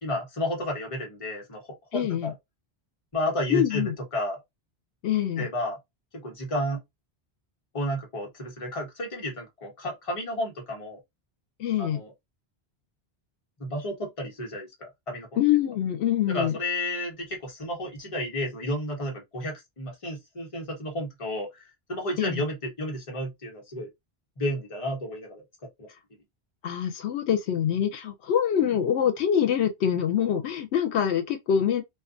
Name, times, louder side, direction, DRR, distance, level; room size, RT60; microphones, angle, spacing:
voice 1, 0.0-2.3 3.1-4.4 5.4-5.8 6.1-6.8 7.7-11.0 11.8-12.1 13.6-15.3 16.3-21.6 21.9-23.9 24.4-25.4 25.8-25.9, left 1 dB, 35° left, 1.0 m, -32 dB
voice 2, 1.9-2.3 3.5-3.9 5.0-5.5 11.6-12.0 15.4-16.6 22.2-22.4 26.6-31.8, left 9 dB, 85° left, 0.8 m, -25 dB
2.4 x 2.3 x 2.3 m
omnidirectional pair, 1.1 m